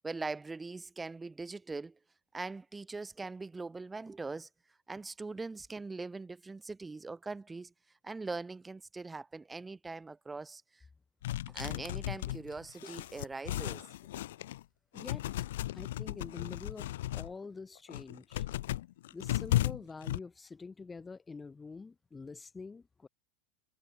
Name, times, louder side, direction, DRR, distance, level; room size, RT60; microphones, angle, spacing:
voice 1, 0.0-2.0 2.3-4.5 4.9-7.7 8.0-10.8 11.5-13.8, right 3 dB, 10° right, 0.6 m, -41 dB
sound 1, 11.2-14.6 15.0-17.3 17.8-20.2, left 14 dB, 75° left, 1.5 m, -35 dB
voice 2, 14.9-15.3 15.7-18.4 19.1-23.1, left 4 dB, 10° left, 2.6 m, -46 dB
supercardioid pair, 140°, 0 cm